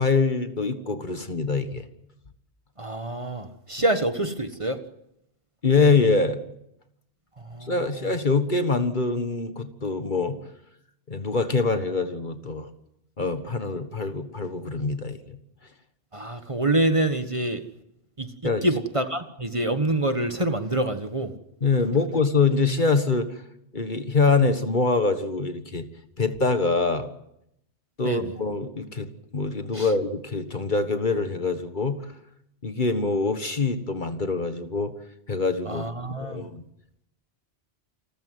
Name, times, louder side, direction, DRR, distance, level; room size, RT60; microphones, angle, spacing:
voice 1, 0.0-1.9 5.6-6.4 7.6-10.4 11.1-12.7 13.2-15.4 18.4-18.7 21.6-23.3 23.7-25.9 26.2-27.1 28.0-29.1 29.3-32.0 32.6-34.9 35.3-35.8 36.2-36.6, left 4 dB, 45° left, 9 dB, 1.7 m, -24 dB
voice 2, 2.8-4.8 7.5-7.7 16.1-17.6 18.2-18.3 18.6-21.3 28.0-28.3 29.7-29.9 35.7-36.5, right 1 dB, 30° right, 8 dB, 1.4 m, -26 dB
28.5 x 14.5 x 9.4 m, 0.80 s
omnidirectional pair, 1.1 m